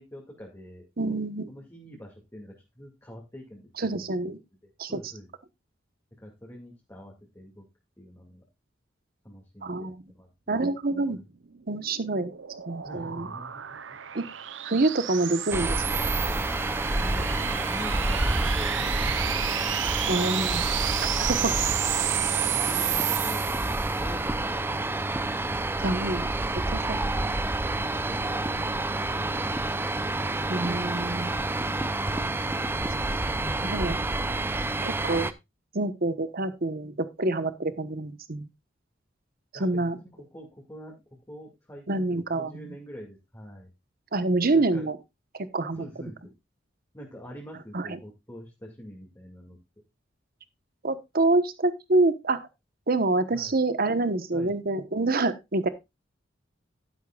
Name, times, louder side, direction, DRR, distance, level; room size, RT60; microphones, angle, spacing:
voice 1, 0.0-1.2 1.5-4.3 4.9-5.3 6.2-7.6 8.0-8.4 9.2-10.6 12.8-14.0 16.9-19.4 21.6-21.7 22.4-25.0 25.3-26.0 27.1-30.0 39.5-41.0 41.3-42.0 42.3-43.7 44.5-44.9 45.7-46.3 46.9-49.6 53.3-53.6 54.3-54.6, equal, 15° left, -2 dB, 2.3 m, -45 dB
voice 2, 1.0-1.5 3.8-4.4 4.8-5.0 9.6-10.0 10.5-11.2 11.7-12.3 12.7-13.3 14.1-14.2 14.6-15.8 20.1-20.6 21.2-21.5 25.8-26.3 26.7-27.0 30.5-31.3 33.6-34.0 34.8-35.3 35.7-38.4 39.5-40.0 41.9-42.7 44.1-45.0 45.3-45.8 47.7-48.0 50.8-52.4 52.9-55.7, right 2 dB, 50° right, 12 dB, 1.1 m, -26 dB
sound 1, 11.5-24.1, right 12 dB, 75° right, 0.7 m, -31 dB
sound 2, 15.5-35.3, right 2 dB, 10° right, 0.6 m, -28 dB
12.0 x 10.0 x 2.4 m, 0.22 s
head